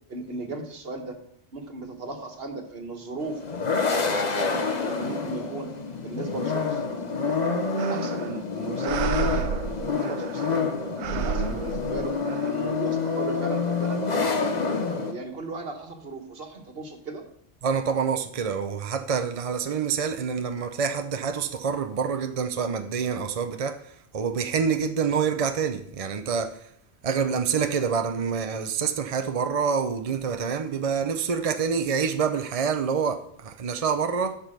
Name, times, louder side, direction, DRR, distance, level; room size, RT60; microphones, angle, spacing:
voice 1, 0.1-1.2 1.5-3.4 3.9-5.7 6.0-6.8 7.2-9.6 9.8-14.0 14.6-17.2, right 2 dB, 60° right, 1.6 m, -36 dB
sound 1, 3.2-15.1, left 4 dB, 40° left, 1.1 m, -27 dB
sound 2, 7.8-8.4 8.8-10.6 11.0-12.5, right 9 dB, 85° right, 0.9 m, -31 dB
voice 2, 17.6-23.8 24.1-26.6 27.0-34.4, right 6 dB, 40° right, 0.6 m, -27 dB
11.5 x 5.3 x 6.6 m
omnidirectional pair, 1.1 m